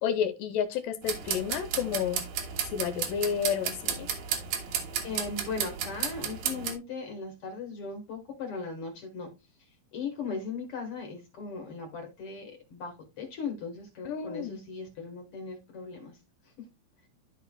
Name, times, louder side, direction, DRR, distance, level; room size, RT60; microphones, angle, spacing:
voice 1, 0.0-2.2 2.6-4.1 14.1-14.6, left 8 dB, 80° left, 2.1 m, -30 dB
sound 1, 1.0-6.7, right 8 dB, 80° right, 2.7 m, -33 dB
voice 2, 5.0-9.3 9.9-16.2 16.4-16.5, left 4 dB, 55° left, 1.7 m, -38 dB
13.0 x 4.6 x 2.2 m
omnidirectional pair, 4.2 m